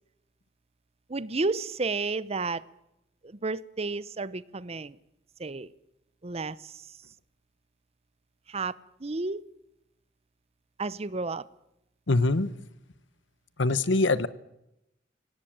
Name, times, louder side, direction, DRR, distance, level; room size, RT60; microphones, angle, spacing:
voice 1, 1.1-2.6 3.2-5.0 5.4-5.7 6.2-6.9 8.5-8.7 9.0-9.4 10.8-11.4, right 3 dB, 35° right, 19 dB, 0.8 m, -31 dB
voice 2, 12.1-12.5 13.6-14.3, left 2 dB, 90° left, 16 dB, 1.2 m, -23 dB
24.5 x 17.5 x 8.9 m, 0.87 s
head